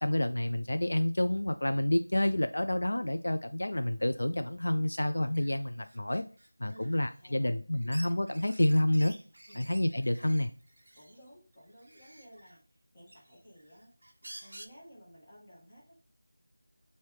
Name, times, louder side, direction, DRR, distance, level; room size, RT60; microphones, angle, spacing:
voice 1, 0.0-6.2 6.6-9.1 9.6-10.5, left 1 dB, 70° left, 9 dB, 0.3 m, -29 dB
sound 1, 5.3-5.6 5.8-7.2 7.7-11.2 11.8-12.6 13.1-14.7, right 1 dB, 45° right, 0.5 m, -51 dB
voice 2, 6.7-7.5 9.5-9.7 10.9-13.9 14.4-15.9, equal, 20° left, -6 dB, 1.8 m, -55 dB
5.9 x 2.7 x 3.2 m, 0.38 s
figure-of-eight pair, 180°, 0 cm